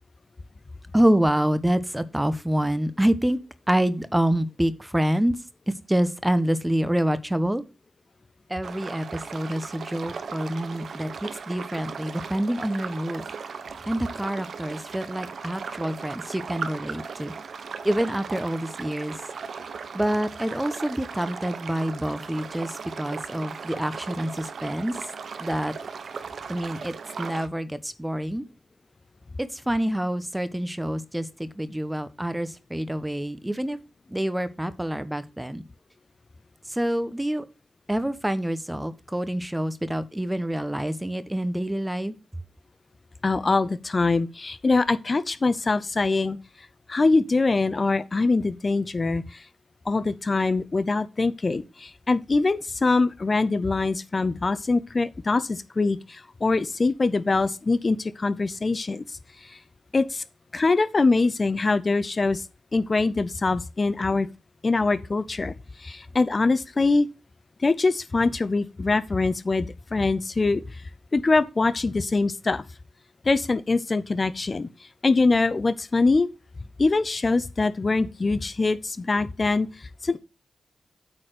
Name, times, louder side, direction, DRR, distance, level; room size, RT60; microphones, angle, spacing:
voice 1, 0.9-3.4 3.7-5.4 5.7-7.6 8.5-13.2 13.9-17.3 17.8-19.1 19.9-24.9 25.4-25.7 26.5-28.4 29.4-33.8 34.1-35.6 36.7-37.4 37.9-42.1, right 1 dB, 10° right, 1.0 m, -27 dB
sound 1, 8.6-27.5, right 5 dB, 75° right, 1.0 m, -37 dB
voice 2, 43.2-46.4 46.9-49.5 49.9-59.6 59.9-60.2 60.5-62.5 62.7-64.3 64.6-67.1 67.6-72.6 73.2-76.3 76.8-80.2, left 3 dB, 40° left, 0.6 m, -23 dB
8.8 x 4.2 x 6.6 m
cardioid pair, 60°, 0 cm